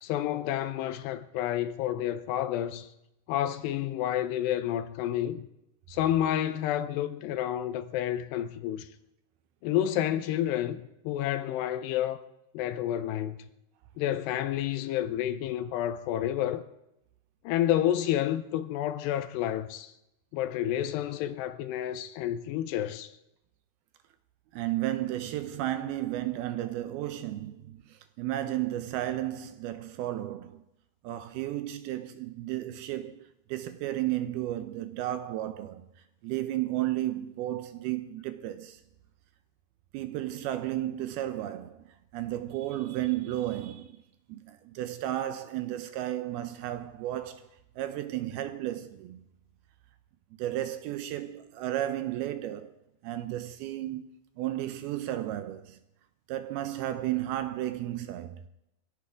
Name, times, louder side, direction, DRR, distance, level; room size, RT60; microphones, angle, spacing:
voice 1, 0.0-2.9 3.3-5.5 5.9-8.9 9.6-12.2 12.5-13.5 14.0-16.6 17.4-19.9 20.3-23.1, left 11 dB, 80° left, 2.7 m, -30 dB
voice 2, 24.5-30.6 31.0-35.9 36.2-38.8 39.9-44.0 44.3-47.5 47.8-49.2 50.4-52.7 53.0-54.1 54.4-55.8 56.3-58.4, right 13 dB, 80° right, 2.3 m, -33 dB
23.0 x 15.5 x 3.6 m
omnidirectional pair, 5.2 m